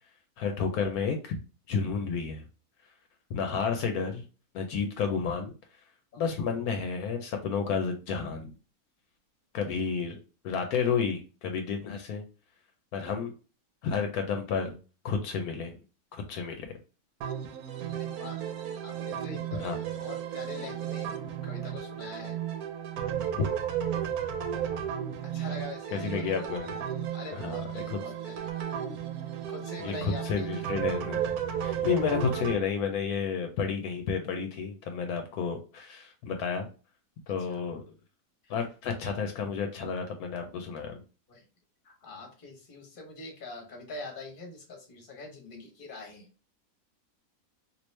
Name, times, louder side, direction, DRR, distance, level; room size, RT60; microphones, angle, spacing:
voice 1, 0.4-1.4 1.7-2.4 3.3-4.2 4.5-5.5 6.2-8.5 9.5-10.2 10.4-12.2 12.9-13.3 13.8-14.8 15.0-15.7 16.1-16.7 19.5-19.8 23.3-23.4 25.9-26.7 27.3-27.5 27.9-28.0 29.8-31.2 31.6-36.7 37.3-37.8 38.5-41.0, left 6 dB, 80° left, 5 dB, 1.1 m, -31 dB
sound 1, 17.2-32.6, right 9 dB, 80° right, 1.1 m, -34 dB
voice 2, 17.9-18.4 18.8-21.1 21.4-22.4 25.3-26.3 27.1-28.5 29.5-30.5 37.4-37.6 38.4-38.6 41.3-41.4 41.8-46.3, left 3 dB, 40° left, 2 dB, 1.1 m, -44 dB
3.1 x 2.7 x 3.1 m, 0.34 s
omnidirectional pair, 1.6 m